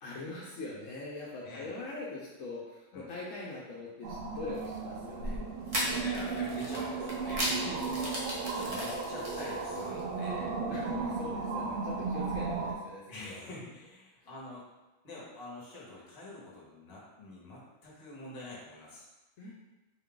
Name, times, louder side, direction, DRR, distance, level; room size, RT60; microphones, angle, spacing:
voice 1, 0.0-5.5 7.4-8.1 10.7-13.4 14.2-14.3 19.4-19.5, left 2 dB, 80° left, -5 dB, 1.0 m, -42 dB
sound 1, 4.0-12.7, right 4 dB, 85° right, 1.0 m, -35 dB
sound 2, 4.5-4.7 5.7-10.0, equal, 35° right, 0.7 m, -37 dB
voice 2, 5.7-7.5 7.9-8.1 8.5-10.6 11.6-11.8 13.1-14.7 15.0-19.1, left 2 dB, 50° left, -5 dB, 1.2 m, -46 dB
4.1 x 2.3 x 3.7 m, 1.1 s
omnidirectional pair, 1.3 m